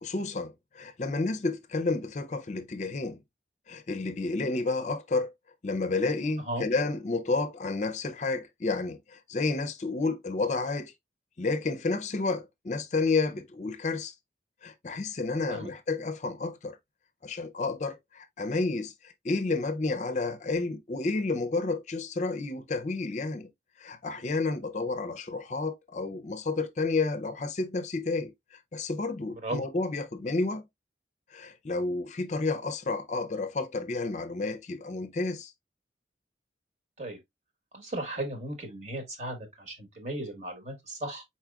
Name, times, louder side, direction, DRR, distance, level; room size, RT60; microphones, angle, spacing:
voice 1, 0.0-3.2 3.7-5.3 5.6-10.9 11.4-14.1 14.6-16.8 17.2-23.5 23.8-30.6 31.3-35.5, left 3 dB, 40° left, 0.5 m, -31 dB
voice 2, 29.3-29.6 37.0-37.2 37.7-41.2, right 1 dB, 40° right, 1.2 m, -36 dB
4.7 x 4.3 x 2.3 m
head